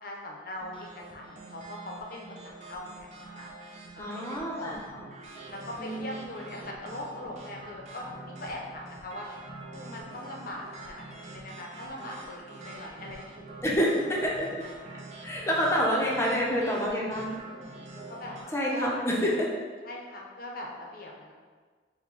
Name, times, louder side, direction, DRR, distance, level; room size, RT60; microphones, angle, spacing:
voice 1, 0.0-3.5 4.0-5.0 5.5-9.3 9.7-13.5 15.9-16.1 17.9-19.4 19.8-21.3, left 1 dB, 50° left, -1 dB, 0.6 m, -41 dB
sound 1, 0.6-18.4, right 2 dB, 40° right, 0.6 m, -46 dB
voice 2, 4.0-4.8 5.8-6.1 13.6-14.5 15.2-17.3 18.5-19.5, equal, 15° left, -3 dB, 0.6 m, -27 dB
4.6 x 2.2 x 4.0 m, 1.5 s
head